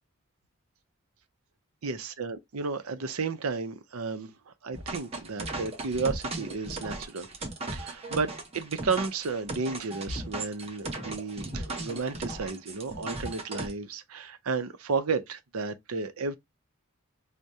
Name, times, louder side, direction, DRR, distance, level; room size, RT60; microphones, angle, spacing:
voice 1, 1.8-4.3 4.6-7.3 7.7-16.4, right 4 dB, 90° right, 0.6 m, -32 dB
sound 1, 4.7-13.7, right 2 dB, 30° right, 0.9 m, -37 dB
4.7 x 2.2 x 2.7 m
head